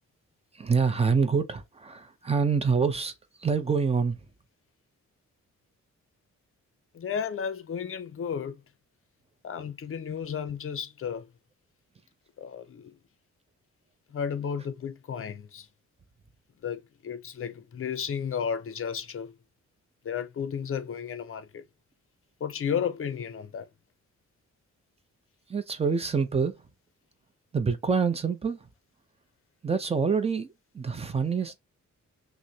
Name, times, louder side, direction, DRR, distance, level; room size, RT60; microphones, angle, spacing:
voice 1, 0.5-3.1 3.4-4.2 25.5-26.7 27.5-28.7 29.6-31.6, right 5 dB, 20° right, 0.6 m, -26 dB
voice 2, 6.9-8.6 9.4-11.3 12.4-12.9 14.1-15.7 16.6-19.3 20.0-21.6 22.4-23.7, left 7 dB, 45° left, 0.6 m, -33 dB
6.1 x 2.1 x 2.8 m
wide cardioid pair, 160°, 29 cm